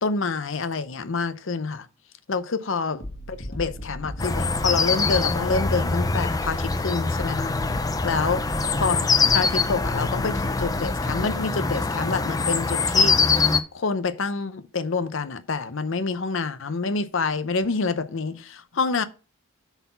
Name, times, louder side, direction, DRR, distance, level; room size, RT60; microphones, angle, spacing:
voice 1, 0.0-1.9 2.3-7.6 8.0-8.4 8.7-13.2 13.7-19.0, left 4 dB, 65° left, 0.7 m, -27 dB
sound 1, 3.0-11.3, equal, 50° left, 1.7 m, -36 dB
sound 2, 4.2-13.6, left 4 dB, 15° left, 0.5 m, -24 dB
8.1 x 4.2 x 5.6 m
head